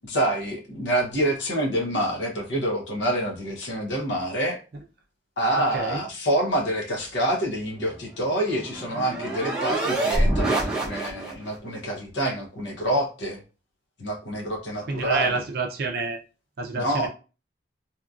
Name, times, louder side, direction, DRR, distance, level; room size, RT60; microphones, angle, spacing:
voice 1, 0.0-4.6 5.4-13.4 14.0-15.4 16.7-17.1, right 1 dB, 75° left, 1 dB, 0.8 m, -27 dB
voice 2, 5.7-6.0 14.9-16.2 16.6-17.1, right 3 dB, 55° right, 1 dB, 0.4 m, -28 dB
sound 1, 7.9-11.5, right 1 dB, 5° right, 0.8 m, -26 dB
2.8 x 2.5 x 2.3 m, 0.33 s
head